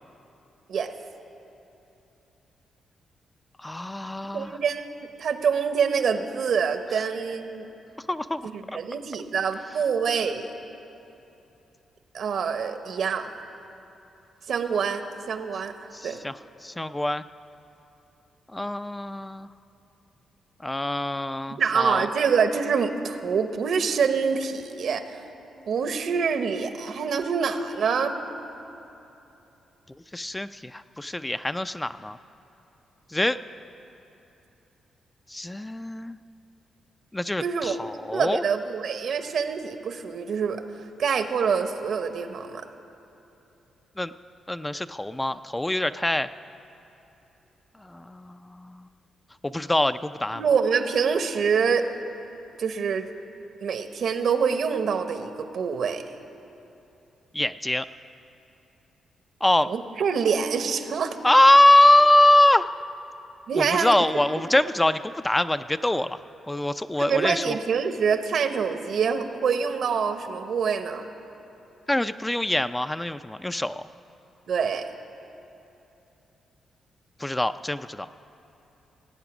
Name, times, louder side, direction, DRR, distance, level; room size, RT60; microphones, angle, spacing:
voice 1, 3.6-4.6 8.1-8.4 15.9-16.3 16.6-17.2 18.5-19.5 20.6-22.1 30.1-32.2 33.1-33.4 35.3-36.2 37.1-38.4 44.0-44.1 44.5-46.3 47.8-48.8 49.4-50.4 57.3-57.9 59.4-59.7 61.2-62.7 63.5-66.2 66.5-67.6 71.9-73.8 77.2-78.1, left 1 dB, 15° left, 11 dB, 0.4 m, -23 dB
voice 2, 4.3-7.7 8.4-10.5 12.1-13.3 14.5-15.0 15.3-16.2 21.6-25.2 25.7-28.2 37.4-37.8 38.1-40.6 41.0-42.6 50.3-51.8 52.6-53.1 53.6-56.1 59.7-61.2 63.5-64.0 64.3-64.5 67.0-71.1 74.5-74.9, right 6 dB, 70° right, 8 dB, 0.9 m, -26 dB
17.0 x 8.3 x 6.1 m, 2.9 s
supercardioid pair, 60°, 0 cm